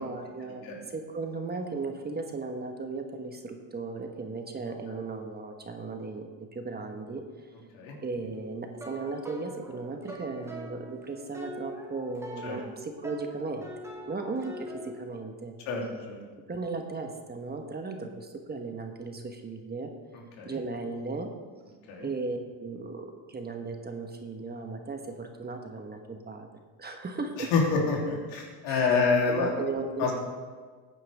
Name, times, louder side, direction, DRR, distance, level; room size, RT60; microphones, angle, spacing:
voice 1, 0.0-7.2 8.0-13.7 14.0-15.5 16.5-19.9 20.4-21.3 22.0-26.5 26.8-27.5 28.7-29.0 29.3-30.1, right 3 dB, 20° right, 4 dB, 1.3 m, -36 dB
sound 1, 8.3-15.0, right 1 dB, 5° right, 1.6 m, -44 dB
voice 2, 15.7-16.2 20.4-20.6 21.9-22.1 27.5-29.5 30.0-30.1, left 4 dB, 80° left, -2 dB, 3.2 m, -27 dB
15.0 x 9.3 x 3.5 m, 1.5 s
supercardioid pair, 110°, 44 cm